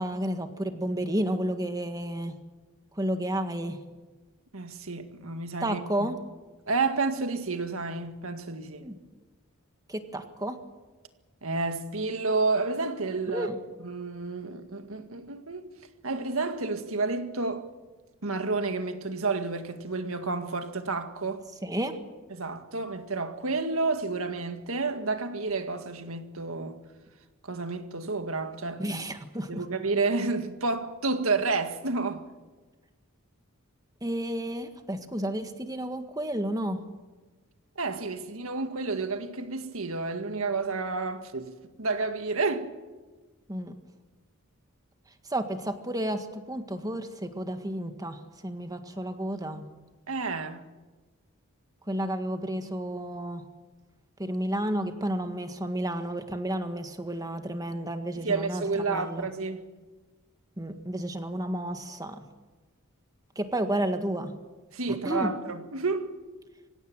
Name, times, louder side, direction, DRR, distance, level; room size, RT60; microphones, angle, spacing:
voice 1, 0.0-2.3 3.0-3.8 5.6-6.2 8.8-9.0 9.9-10.6 13.3-13.6 21.6-22.0 28.8-29.6 34.0-36.8 43.5-43.7 45.3-49.7 51.9-53.4 54.2-59.3 60.6-62.2 63.4-64.3 64.9-65.3, right 1 dB, 15° right, 1.8 m, -31 dB
voice 2, 4.5-6.1 6.7-8.8 11.4-13.5 13.8-15.7 16.0-17.7 18.2-21.5 22.3-26.8 27.4-29.0 29.5-32.2 37.8-42.7 50.1-50.6 58.1-59.6 64.7-66.1, right 3 dB, 70° right, 2.0 m, -30 dB
25.0 x 16.5 x 9.0 m
head